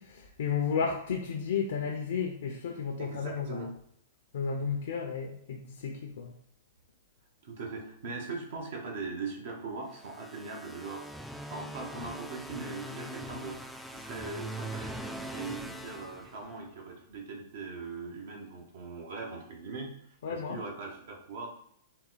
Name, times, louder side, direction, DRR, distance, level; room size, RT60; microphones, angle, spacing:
voice 1, 0.0-3.6 4.3-6.3 20.2-20.6, left 6 dB, 75° left, 2 dB, 0.5 m, -33 dB
voice 2, 3.0-3.7 7.4-11.1 11.5-13.6 13.9-21.5, right 4 dB, 70° right, 0 dB, 1.0 m, -40 dB
sound 1, 9.9-16.8, right 1 dB, ahead, 0.3 m, -42 dB
4.1 x 2.2 x 3.9 m, 0.70 s
hypercardioid pair, 130°, 0 cm